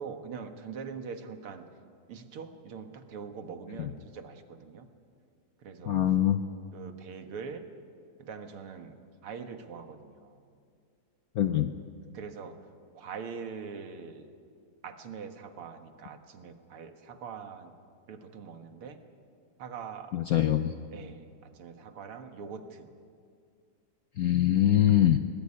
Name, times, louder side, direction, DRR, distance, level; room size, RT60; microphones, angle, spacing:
voice 1, 0.0-1.6 2.1-4.9 5.6-6.0 6.7-7.7 8.2-9.0 9.2-10.4 12.1-12.6 12.9-14.3 14.8-17.7 18.1-19.0 19.6-20.2 20.9-22.9, right 6 dB, 80° right, 7 dB, 2.4 m, -43 dB
voice 2, 5.9-6.4 11.3-11.7 20.1-20.8 24.2-25.2, left 11 dB, 70° left, 9 dB, 0.9 m, -24 dB
22.5 x 19.5 x 9.8 m, 2.3 s
omnidirectional pair, 2.4 m